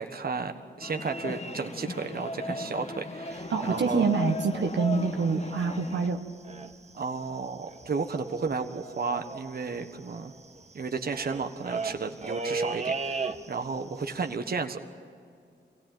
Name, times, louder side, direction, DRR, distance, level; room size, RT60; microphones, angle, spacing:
voice 1, 0.0-4.1 6.9-10.3 10.7-14.8, right 4 dB, 55° right, 6 dB, 1.4 m, -33 dB
sound 1, 0.8-6.1, left 3 dB, 35° left, 1.4 m, -37 dB
sound 2, 3.3-5.6 5.9-6.2 6.4-6.9 7.2-7.3 7.4-13.8 14.1-14.3, right 4 dB, 35° right, 1.5 m, -37 dB
voice 2, 3.5-6.2, right 4 dB, 80° right, 4 dB, 1.5 m, -26 dB
25.0 x 17.0 x 9.1 m, 2.3 s
cardioid pair, 65°, 18 cm